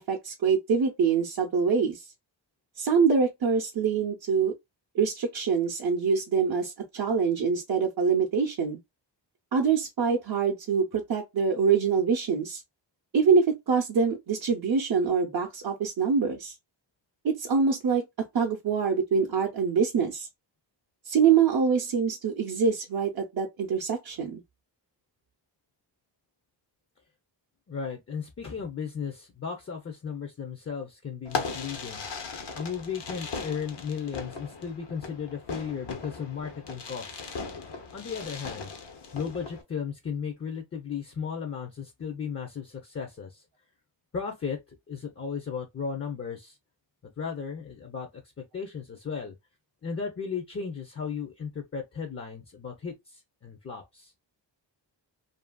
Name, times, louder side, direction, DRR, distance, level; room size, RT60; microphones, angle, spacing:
voice 1, 0.0-2.0 2.8-4.5 4.9-8.8 9.5-12.6 13.1-16.5 17.2-18.0 18.3-20.3 21.1-24.4, right 6 dB, 55° right, 0.6 m, -25 dB
voice 2, 27.7-32.0 32.5-37.4 37.9-38.7 39.1-43.4 44.1-44.6 44.9-46.6 47.2-48.1 48.4-49.3 49.8-54.1, left 6 dB, 30° left, 0.5 m, -35 dB
Fireworks, 31.2-39.6, left 4 dB, 65° left, 0.8 m, -38 dB
2.7 x 2.5 x 2.2 m
wide cardioid pair, 115°, 45 cm